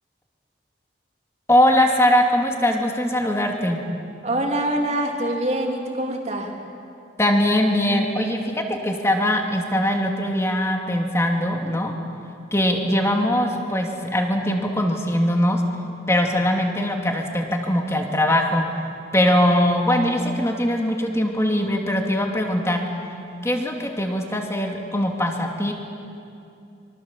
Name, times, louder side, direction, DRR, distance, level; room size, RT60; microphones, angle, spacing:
voice 1, 1.5-3.8 7.2-11.9 12.5-15.6 16.1-18.7 19.1-22.8 23.4-25.7, left 1 dB, 15° left, 2 dB, 2.6 m, -21 dB
voice 2, 4.2-6.6, right 1 dB, 40° right, 0 dB, 3.4 m, -24 dB
25.5 x 24.5 x 7.5 m, 2.6 s
head